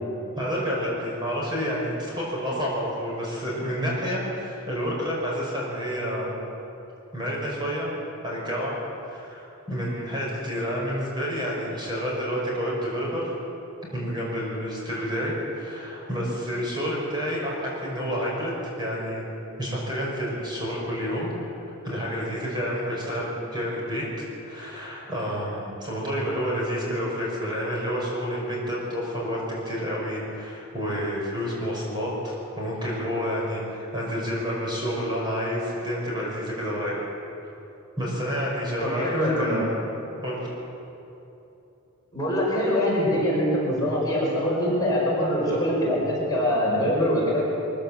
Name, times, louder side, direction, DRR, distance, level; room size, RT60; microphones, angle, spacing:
voice 1, 0.3-6.3 7.1-7.9 8.2-8.7 9.1-13.3 13.9-19.2 19.6-21.3 21.8-37.0 38.0-39.8 40.2-40.5, equal, 20° right, -4 dB, 5.7 m, -29 dB
voice 2, 38.8-39.6 42.1-47.5, equal, 15° left, -6 dB, 5.5 m, -24 dB
23.5 x 15.5 x 7.6 m, 2.9 s
head